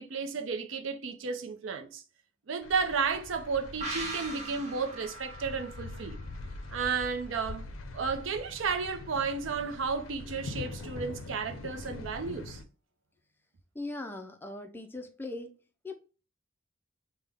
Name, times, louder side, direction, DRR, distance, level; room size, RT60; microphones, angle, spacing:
voice 1, 0.0-2.0 2.5-6.2 6.7-7.6 7.9-12.6, right 5 dB, 75° right, 0.5 m, -33 dB
sound 1, 2.6-12.6, left 2 dB, 90° left, 0.5 m, -43 dB
sound 2, 3.8-7.3 7.6-7.7, right 2 dB, 35° right, 0.7 m, -41 dB
voice 2, 13.7-15.6 15.8-15.9, left 2 dB, 10° left, 0.3 m, -39 dB
3.4 x 2.1 x 3.3 m
head